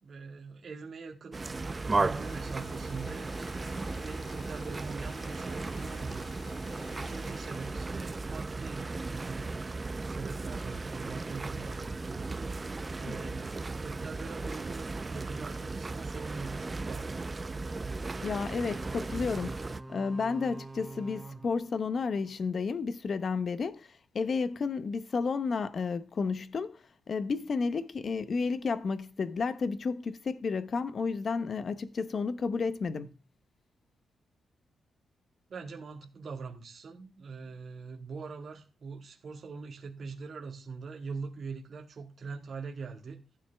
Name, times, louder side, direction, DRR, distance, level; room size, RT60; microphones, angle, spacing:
voice 1, 0.0-1.4 1.9-3.3 4.0-6.2 6.9-8.9 9.2-12.4 13.0-17.1 35.5-43.2, right 4 dB, 50° right, 2.0 m, -43 dB
sound 1, 1.3-19.8, right 3 dB, 25° right, 0.5 m, -36 dB
sound 2, 1.4-8.2 9.0-9.3, left 3 dB, 85° left, 4.1 m, -53 dB
sound 3, 18.0-22.4, right 2 dB, 5° right, 1.0 m, -47 dB
voice 2, 18.2-19.6 19.9-33.1, left 4 dB, 45° left, 0.9 m, -32 dB
15.0 x 9.5 x 3.4 m
cardioid pair, 115°, 0 cm